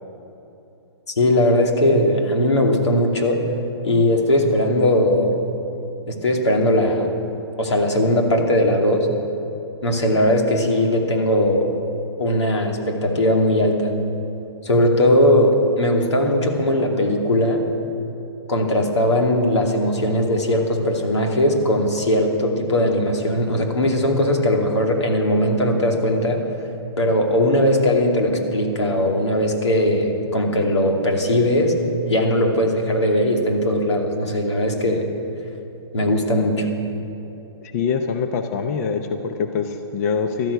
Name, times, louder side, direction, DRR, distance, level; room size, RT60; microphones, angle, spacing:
voice 1, 1.2-3.4 3.8-5.4 6.1-7.1 7.6-9.1 9.8-11.7 12.2-13.9 14.6-17.6 18.5-26.4 27.0-31.7 32.0-35.1 35.9-36.7, left 1 dB, 90° left, 1 dB, 2.5 m, -19 dB
voice 2, 37.7-40.5, left 6 dB, 35° left, 7 dB, 0.7 m, -24 dB
12.5 x 11.5 x 8.1 m, 2.9 s
hypercardioid pair, 155°, 14 cm